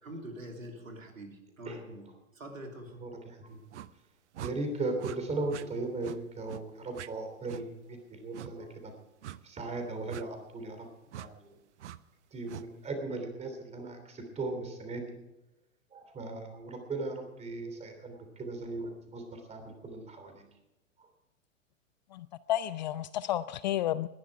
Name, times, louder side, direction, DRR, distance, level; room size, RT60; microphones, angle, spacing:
voice 1, 0.0-3.0, right 1 dB, 80° right, 3 dB, 3.3 m, -45 dB
voice 2, 3.0-3.6 4.4-8.9 9.4-10.9 11.2-11.5 12.3-15.1 15.9-20.4 21.0-21.1, right 2 dB, 15° right, 6 dB, 3.2 m, -38 dB
Whooshes (mouth) (fast), 3.7-3.9 4.3-4.5 5.0-5.2 5.5-5.7 6.0-6.2 6.5-6.6 6.9-7.1 7.5-7.6 8.3-8.5 9.2-9.4 10.1-10.2 11.1-11.3 11.8-12.0 12.5-12.7, right 12 dB, 60° right, 0.7 m, -42 dB
voice 3, 22.1-24.1, left 12 dB, 35° left, 16 dB, 0.4 m, -31 dB
20.0 x 11.0 x 4.9 m, 0.98 s
figure-of-eight pair, 105°, 40 cm